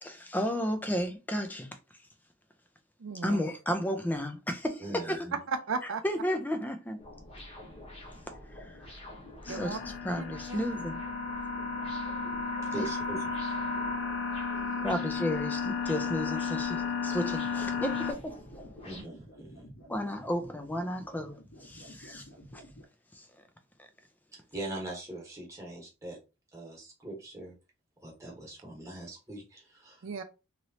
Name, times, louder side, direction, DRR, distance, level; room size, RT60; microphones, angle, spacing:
voice 1, 0.0-1.7 3.2-5.3 6.0-7.0 8.5-8.8 9.4-11.0 12.8-12.9 14.8-18.4 19.9-22.3 22.5-22.6 23.1-23.3 23.8-23.9, equal, 10° left, 0.4 m, -33 dB
voice 2, 3.0-3.4 5.5-6.0 9.5-9.8 10.1-10.6 30.0-30.2, right 4 dB, 65° right, 0.4 m, -35 dB
voice 3, 4.8-5.4 12.7-13.5 14.7-14.8 18.8-19.7 24.3-26.2 26.5-27.5 28.0-30.0, right 1 dB, 15° right, 1.2 m, -42 dB
sound 1, 7.0-19.0, left 1 dB, 30° left, 1.0 m, -48 dB
sound 2, 9.5-18.1, left 5 dB, 60° left, 0.6 m, -33 dB
sound 3, 17.3-22.9, equal, 80° left, 1.3 m, -51 dB
3.0 x 2.9 x 2.7 m
head